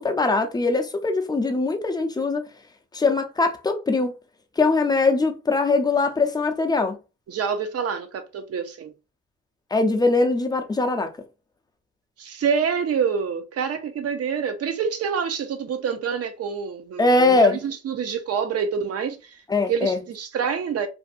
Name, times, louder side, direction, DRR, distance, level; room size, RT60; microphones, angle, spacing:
voice 1, 0.0-2.4 2.9-4.1 4.6-7.0 9.7-11.1 17.0-17.6 19.5-20.0, left 3 dB, 15° left, 0.5 m, -21 dB
voice 2, 7.3-8.9 12.2-20.9, right 6 dB, 55° right, 0.7 m, -27 dB
2.6 x 2.5 x 2.4 m
cardioid pair, 90°, 30 cm